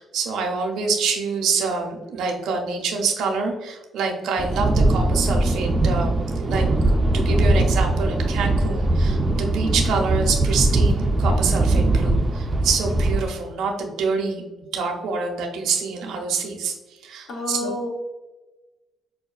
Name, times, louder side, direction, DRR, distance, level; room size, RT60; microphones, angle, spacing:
voice 1, 0.0-6.7 7.1-14.4 14.7-17.7, right 4 dB, 80° right, 1 dB, 0.5 m, -26 dB
sound 1, 4.4-13.3, right 2 dB, 25° right, 0.3 m, -20 dB
voice 2, 17.3-17.9, left 1 dB, 70° left, 2 dB, 0.7 m, -28 dB
4.9 x 2.2 x 2.2 m, 1.1 s
cardioid pair, 90°, 0 cm